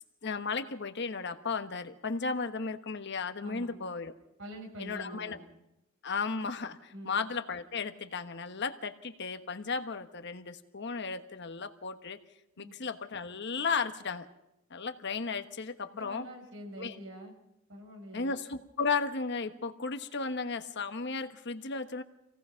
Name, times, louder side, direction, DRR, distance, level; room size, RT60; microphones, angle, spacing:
voice 1, 0.2-4.1 4.8-5.4 6.0-12.2 12.6-14.3 14.7-16.3 16.8-17.0 18.1-22.0, left 4 dB, 55° left, 9 dB, 1.3 m, -35 dB
voice 2, 3.4-3.8 4.4-5.4 6.9-7.1 12.6-12.7 15.9-17.3 17.7-18.3, equal, 65° right, 2 dB, 6.0 m, -45 dB
26.5 x 17.5 x 5.8 m, 0.88 s
head